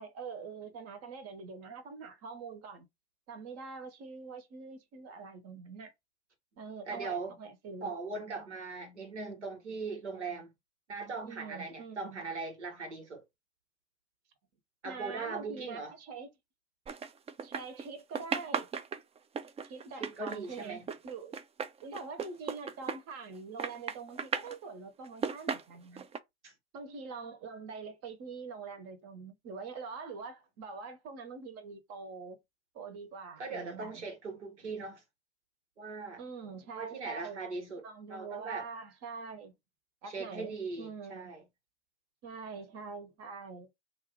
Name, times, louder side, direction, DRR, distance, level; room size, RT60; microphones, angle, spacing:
voice 1, 0.0-2.9 3.3-5.9 6.6-8.0 11.2-12.2 14.8-16.3 17.4-18.7 19.6-21.4 21.8-26.1 26.7-32.4 32.7-34.1 36.2-37.4 37.8-39.5 40.0-41.3 42.2-43.7, right 4 dB, 50° right, 1.0 m, -44 dB
voice 2, 6.9-7.3 7.8-10.5 10.9-13.2 14.8-15.9 20.0-20.9 26.4-26.5 33.4-35.0 35.8-36.2 36.7-37.8 38.1-38.7 40.1-41.4, right 4 dB, 85° right, 1.4 m, -40 dB
sound 1, 16.9-17.9 18.1-23.3 23.6-24.6 25.0-26.2, right 6 dB, 20° right, 0.4 m, -36 dB
2.5 x 2.5 x 3.6 m
hypercardioid pair, 75°, 34 cm